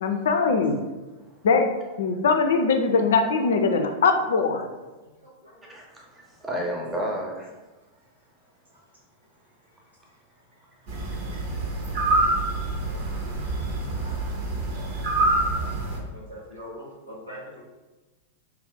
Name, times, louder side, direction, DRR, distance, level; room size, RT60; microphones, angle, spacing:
voice 1, 0.0-0.8 1.4-1.7 2.0-4.7, left 4 dB, 60° left, 6 dB, 0.3 m, -21 dB
voice 2, 5.7-7.5 11.5-11.6 11.9-12.0 13.1-13.3 14.2-14.3 14.9-15.0, equal, 10° right, -2 dB, 0.8 m, -32 dB
sound 1, 10.9-16.0, right 2 dB, 50° right, 0.7 m, -26 dB
voice 3, 16.1-17.6, equal, 80° right, -6 dB, 1.3 m, -42 dB
2.8 x 2.4 x 3.5 m, 1.2 s
figure-of-eight pair, 90°, 0 cm